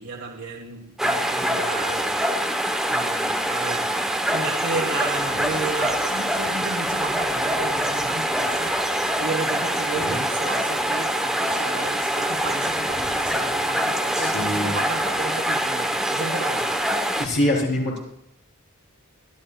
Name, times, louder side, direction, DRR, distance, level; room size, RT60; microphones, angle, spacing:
voice 1, 0.0-2.1 2.9-3.8 4.3-16.7, right 4 dB, 70° right, -3 dB, 1.7 m, -33 dB
sound 1, 1.0-17.3, equal, ahead, 1.0 m, -24 dB
voice 2, 14.2-14.8 17.2-18.0, left 1 dB, 50° left, -2 dB, 4.5 m, -24 dB
24.5 x 12.5 x 2.4 m, 0.77 s
head